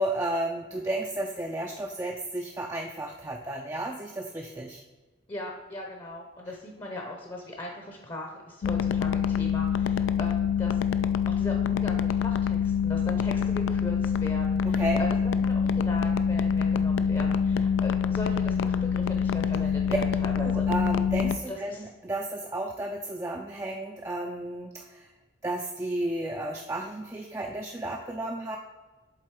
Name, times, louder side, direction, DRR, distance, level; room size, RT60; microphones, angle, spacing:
voice 1, 0.0-4.8 14.7-15.0 20.4-25.0 25.4-28.6, right 1 dB, 15° right, 1 dB, 0.4 m, -33 dB
voice 2, 5.3-10.8 11.4-20.6 21.5-21.9, left 1 dB, 25° left, 1 dB, 0.7 m, -39 dB
sound 1, 8.6-21.4, left 7 dB, 90° left, 0.4 m, -25 dB
7.6 x 3.8 x 4.7 m, 1.2 s
head